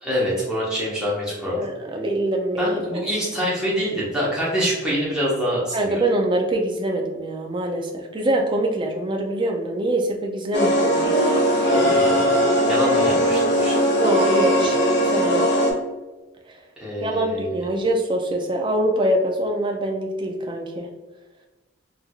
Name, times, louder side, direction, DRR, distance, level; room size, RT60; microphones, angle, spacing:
voice 1, 0.0-1.6 2.6-6.0 11.7-12.3 12.6-13.8 16.8-17.7, equal, 5° right, -7 dB, 0.9 m, -25 dB
voice 2, 1.6-3.0 5.7-11.2 14.0-14.8 15.1-15.5 16.5-16.6 17.0-20.9, right 1 dB, 20° right, 1 dB, 0.4 m, -24 dB
sound 1, 10.5-15.7, equal, 50° left, 0.7 m, -19 dB
4.3 x 2.5 x 2.3 m, 1.2 s
head